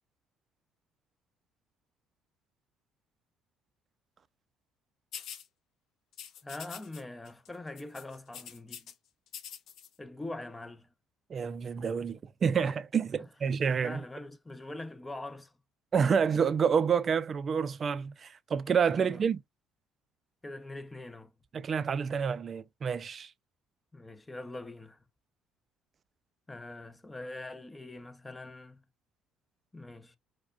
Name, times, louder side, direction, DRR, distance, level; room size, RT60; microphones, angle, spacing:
sound 1, 5.1-5.5 6.1-7.0 7.3-7.5 7.8-8.9 9.3-9.9, left 8 dB, 65° left, 0.6 m, -45 dB
voice 1, 6.4-8.9 10.0-10.9 13.2-13.3 13.8-15.5 19.0-19.3 20.4-21.4 23.9-25.1 26.5-28.8 29.7-30.2, left 2 dB, 15° left, 0.5 m, -43 dB
voice 2, 11.3-14.0 15.9-19.4 21.5-23.3, right 6 dB, 40° right, 0.4 m, -28 dB
4.8 x 2.2 x 2.3 m
supercardioid pair, 85°, 0 cm